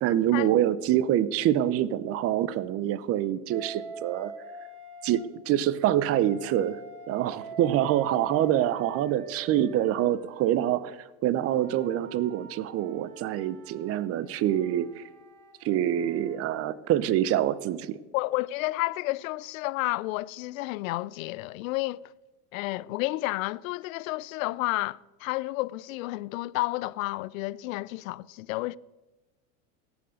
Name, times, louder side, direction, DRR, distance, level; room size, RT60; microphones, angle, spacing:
voice 1, 0.0-4.3 5.0-6.8 7.1-15.0 15.6-18.0, right 12 dB, 35° right, 0.6 m, -26 dB
Wind instrument woodwind instrument, 3.5-5.3 6.0-10.7 11.4-16.6, right 3 dB, 70° right, 2.7 m, -44 dB
voice 2, 18.1-22.1 22.5-28.8, left 19 dB, 70° left, 0.5 m, -31 dB
16.5 x 7.1 x 6.3 m
supercardioid pair, 120°, 42 cm